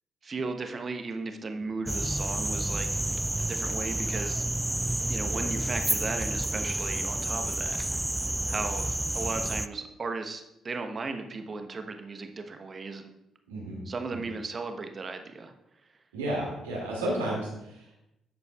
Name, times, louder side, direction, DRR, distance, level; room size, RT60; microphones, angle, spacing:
voice 1, 0.2-3.0 3.4-4.4 5.1-7.8 8.5-13.1 13.9-15.5, right 3 dB, 40° right, 6 dB, 1.0 m, -36 dB
sound 1, 1.9-9.7, right 1 dB, 10° right, 0.3 m, -30 dB
voice 2, 13.5-13.8 14.1-14.2 16.1-18.0, right 1 dB, 85° right, -4 dB, 2.4 m, -33 dB
11.5 x 8.1 x 2.4 m, 0.86 s
hypercardioid pair, 40°, 0 cm